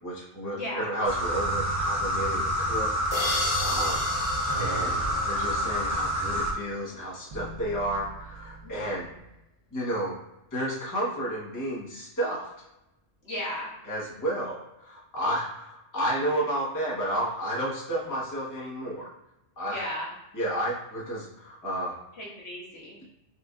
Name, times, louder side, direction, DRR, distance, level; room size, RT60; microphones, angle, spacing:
voice 1, 0.0-4.1 4.6-5.0 5.2-9.1 9.7-10.2 10.5-12.5 13.9-19.1 19.6-19.8 20.3-22.0, right 1 dB, 15° left, -6 dB, 1.0 m, -31 dB
voice 2, 0.5-0.9 4.8-5.1 8.6-9.1 13.2-13.7 19.7-20.1 22.1-23.0, left 1 dB, 60° left, -6 dB, 1.3 m, -36 dB
sound 1, 1.0-6.5, equal, 20° right, 0.4 m, -28 dB
sound 2, 3.1-5.9, left 3 dB, 90° left, 1.3 m, -33 dB
sound 3, 3.3-9.2, right 4 dB, 80° right, 1.4 m, -44 dB
5.5 x 2.5 x 2.4 m, 0.92 s
omnidirectional pair, 1.3 m